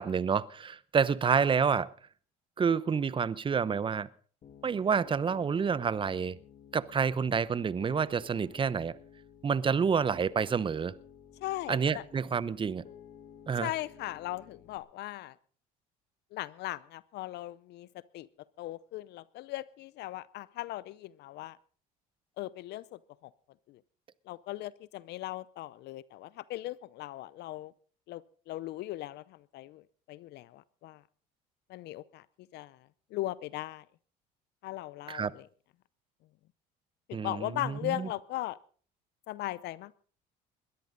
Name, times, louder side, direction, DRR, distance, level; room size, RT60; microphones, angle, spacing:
voice 1, 0.0-1.9 2.6-4.1 4.6-6.4 6.7-8.9 9.4-10.9 11.7-12.8 13.5-13.7 35.1-35.3 37.1-38.1, right 6 dB, 25° right, 0.8 m, -28 dB
Piano, 4.4-14.8, left 8 dB, 45° left, 2.6 m, -54 dB
voice 2, 11.4-12.0 13.6-15.4 16.3-17.9 18.1-18.3 18.6-21.6 22.4-23.3 23.7-23.8 24.3-27.7 28.1-28.2 28.5-31.0 31.7-32.3 32.5-33.8 34.6-35.5 37.1-38.6 39.3-39.9, left 16 dB, 65° left, 0.6 m, -38 dB
21.0 x 13.5 x 3.9 m
supercardioid pair, 85°, 19 cm